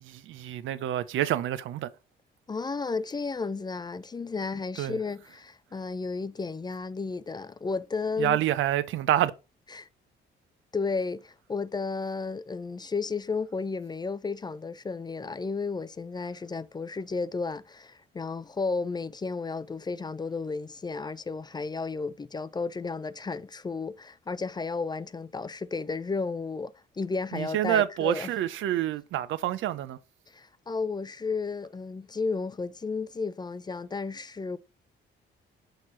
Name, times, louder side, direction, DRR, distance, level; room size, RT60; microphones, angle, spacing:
voice 1, 0.0-1.9 4.8-5.0 8.2-9.3 27.3-30.0, right 12 dB, 80° right, 0.6 m, -27 dB
voice 2, 2.5-8.4 9.7-9.9 10.7-28.3 30.3-34.6, left 4 dB, 20° left, 0.4 m, -33 dB
6.4 x 3.1 x 5.7 m
cardioid pair, 90°, 20 cm